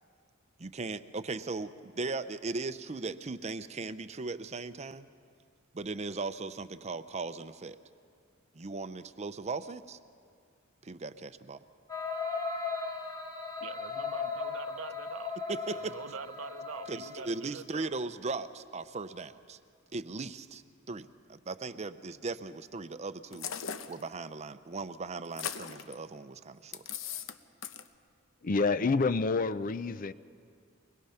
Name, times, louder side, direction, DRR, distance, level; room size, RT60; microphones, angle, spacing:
voice 1, 0.6-5.1 5.7-7.8 8.5-10.0 10.8-11.6 15.5-15.9 16.9-19.6 19.9-23.5 23.9-26.8, right 3 dB, 35° right, 12 dB, 0.6 m, -38 dB
sound 1, 11.9-17.5, left 4 dB, 15° left, 1.5 m, -37 dB
voice 2, 13.6-15.4 15.7-17.9, right 5 dB, 80° right, 11 dB, 0.8 m, -44 dB
sound 2, 23.3-24.0 25.2-25.9 26.7-27.4 27.6-27.9, left 8 dB, 70° left, 0.8 m, -38 dB
voice 3, 28.4-30.1, left 4 dB, 40° left, 14 dB, 0.5 m, -28 dB
22.5 x 21.0 x 5.7 m, 2.2 s
head